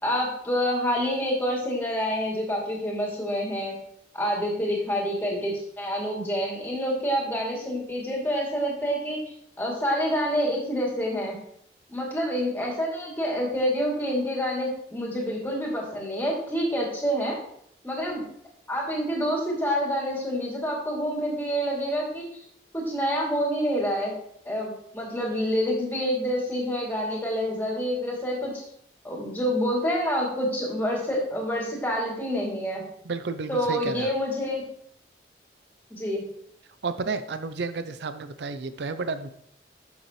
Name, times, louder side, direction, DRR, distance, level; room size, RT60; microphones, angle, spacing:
voice 1, 0.0-3.7 4.1-9.2 9.6-11.4 11.9-17.4 17.8-18.2 18.7-22.3 22.7-24.1 24.4-28.5 29.0-32.8 33.5-34.6 35.9-36.2, equal, 10° left, -4 dB, 2.9 m, -27 dB
voice 2, 33.0-34.1 36.8-39.3, right 4 dB, 75° right, 10 dB, 0.5 m, -31 dB
12.0 x 6.9 x 3.2 m, 0.70 s
head